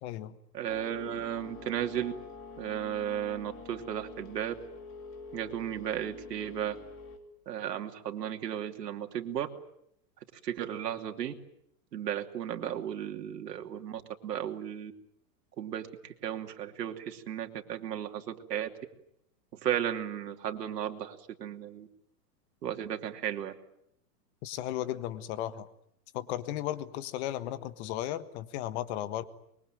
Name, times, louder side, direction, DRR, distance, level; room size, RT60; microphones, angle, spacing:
voice 1, 0.0-0.4 24.4-25.7 26.1-29.2, left 12 dB, 45° left, 13 dB, 1.6 m, -35 dB
voice 2, 0.5-2.1 2.6-4.5 5.3-6.8 7.5-9.5 10.4-11.3 11.9-14.9 15.6-15.9 16.2-18.7 19.6-21.9 22.6-23.5, right 10 dB, 80° right, 5 dB, 2.9 m, -34 dB
sound 1, 0.7-7.2, left 4 dB, 25° left, 3.1 m, -47 dB
25.0 x 22.5 x 9.2 m, 0.75 s
hypercardioid pair, 145°, 48 cm